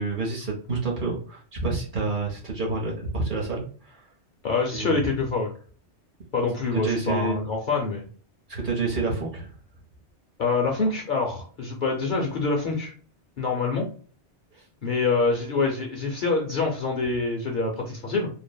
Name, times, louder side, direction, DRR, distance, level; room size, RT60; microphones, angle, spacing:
voice 1, 0.0-4.0 4.7-5.0 6.8-7.4 8.5-9.5, right 3 dB, 50° right, -1 dB, 0.8 m, -28 dB
voice 2, 4.4-5.5 6.3-8.1 10.4-12.9 13.4-13.9 14.8-18.3, left 3 dB, 55° left, 0 dB, 0.6 m, -25 dB
3.2 x 2.0 x 2.2 m, 0.42 s
omnidirectional pair, 1.2 m